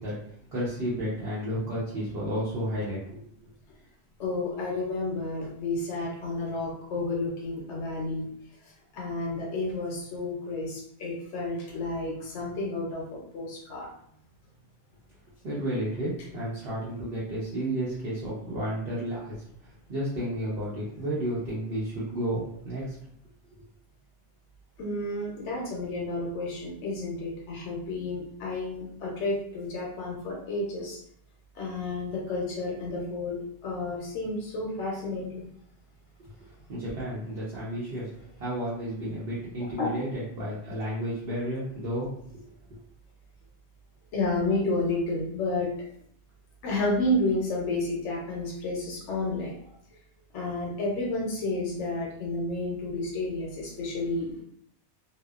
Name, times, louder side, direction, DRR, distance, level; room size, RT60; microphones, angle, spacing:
voice 1, 0.0-3.2 15.4-19.4 19.6-23.0 23.5-23.6 36.2-36.3 36.7-38.1 38.4-42.4 42.7-42.8, equal, 65° right, -9 dB, 0.9 m, -32 dB
voice 2, 4.2-8.3 8.9-13.9 24.8-31.0 31.5-35.5 39.8-39.9 44.1-45.7 46.6-49.6 50.3-54.4, left 2 dB, 90° left, -2 dB, 1.0 m, -31 dB
2.7 x 2.0 x 2.3 m, 0.67 s
omnidirectional pair, 1.2 m